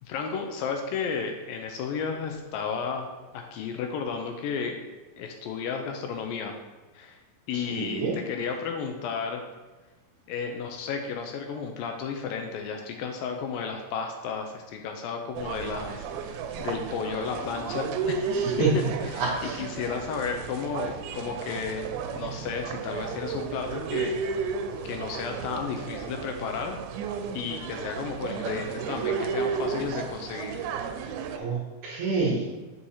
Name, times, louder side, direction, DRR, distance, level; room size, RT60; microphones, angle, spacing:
voice 1, 0.0-3.1 3.3-4.8 5.2-6.6 6.9-7.2 7.5-9.4 10.3-18.7 19.0-24.2 24.8-26.8 27.3-30.6, left 6 dB, 80° left, 3 dB, 2.2 m, -33 dB
voice 2, 7.5-8.2 18.3-18.7 19.2-19.6 31.3-32.5, right 4 dB, 65° right, -4 dB, 2.1 m, -28 dB
sound 1, 15.4-31.4, right 6 dB, 85° right, 2.5 m, -33 dB
7.2 x 6.4 x 2.8 m, 1.2 s
omnidirectional pair, 4.3 m